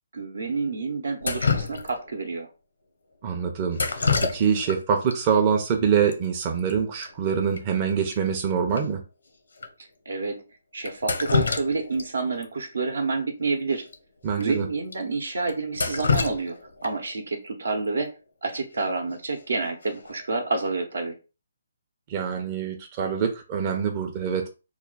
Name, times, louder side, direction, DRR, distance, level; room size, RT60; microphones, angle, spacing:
voice 1, 0.1-2.5 10.1-10.4 10.7-13.9 14.4-16.6 16.8-18.1 18.4-21.2, right 3 dB, 70° right, 0.8 m, -28 dB
Drip, 1.2-2.2 3.7-4.8 5.1-5.2 6.1-6.2 6.5-6.7 7.0-7.1 7.6-7.7 8.1-8.2 8.8-8.9 9.6-9.7 10.8-12.1 12.4-12.5 13.8-13.9 14.4-14.5 14.9-15.0 15.5-17.1 19.1-19.4 19.8-20.2, left 5 dB, 75° left, 0.7 m, -27 dB
voice 2, 3.2-9.0 14.2-14.7 22.1-24.5, right 7 dB, 30° right, 0.6 m, -25 dB
3.1 x 2.2 x 3.8 m
figure-of-eight pair, 140°, 0 cm